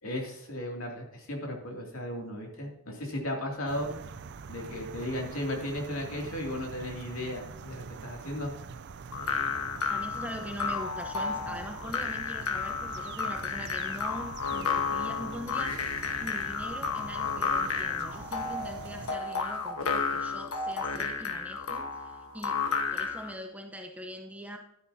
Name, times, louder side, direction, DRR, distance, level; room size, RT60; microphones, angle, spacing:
voice 1, 0.0-3.9 4.5-8.5 11.5-11.6, left 1 dB, 70° left, 0 dB, 2.7 m, -35 dB
sound 1, 3.7-19.2, right 5 dB, 55° right, 0.5 m, -45 dB
sound 2, 9.1-23.3, left 5 dB, 85° left, 1.3 m, -32 dB
voice 2, 9.9-22.6 22.9-24.6, equal, 5° right, 3 dB, 0.9 m, -42 dB
11.5 x 9.8 x 2.8 m, 0.80 s
head